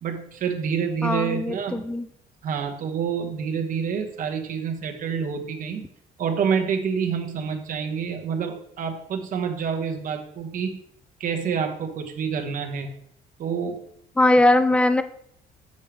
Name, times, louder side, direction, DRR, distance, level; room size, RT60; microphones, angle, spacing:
voice 1, 0.0-1.8 2.4-5.8 6.2-10.8 11.2-12.9 13.4-13.8, right 6 dB, 55° right, 4 dB, 1.2 m, -27 dB
voice 2, 1.0-2.1 14.2-15.0, left 1 dB, 5° left, 11 dB, 0.4 m, -20 dB
7.1 x 6.4 x 3.4 m, 0.69 s
cardioid pair, 110°, 17 cm